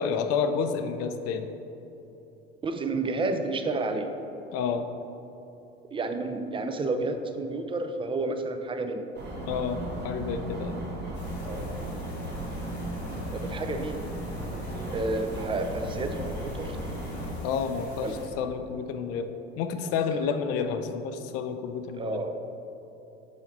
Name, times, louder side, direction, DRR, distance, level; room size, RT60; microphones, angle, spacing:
voice 1, 0.0-1.5 4.5-4.9 9.5-10.7 17.4-18.1 18.4-19.3 19.6-22.2, left 6 dB, 50° left, 8 dB, 0.5 m, -30 dB
voice 2, 2.6-4.1 5.9-9.1 11.5-11.8 13.3-14.0 14.9-16.8 18.0-18.2 22.0-22.3, right 3 dB, 15° right, 7 dB, 0.5 m, -30 dB
sound 1, 9.1-17.3, right 1 dB, 30° right, 1.3 m, -36 dB
sound 2, 11.1-18.3, equal, 85° left, 1.0 m, -41 dB
5.1 x 4.9 x 5.5 m, 3.0 s
figure-of-eight pair, 65°, 32 cm